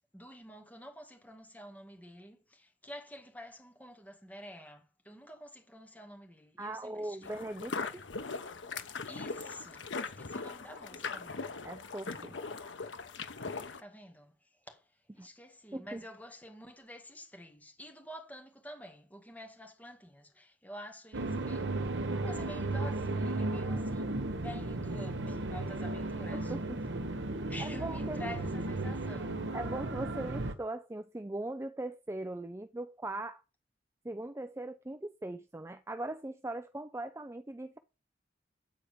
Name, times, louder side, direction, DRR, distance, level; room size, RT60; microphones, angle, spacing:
voice 1, 0.1-7.4 9.1-11.5 13.8-14.9 15.1-26.5 27.5-29.5, equal, 10° left, 1.9 m, -49 dB
voice 2, 6.6-8.0 11.6-12.4 15.2-15.3 15.7-16.0 26.3-26.8 27.1-27.2 27.6-28.3 29.5-33.4 34.0-37.8, right 2 dB, 15° right, 0.4 m, -40 dB
sound 1, 7.2-13.8, left 4 dB, 90° left, 1.0 m, -40 dB
sound 2, 21.1-30.5, right 2 dB, 75° right, 1.1 m, -35 dB
9.3 x 4.5 x 6.7 m
head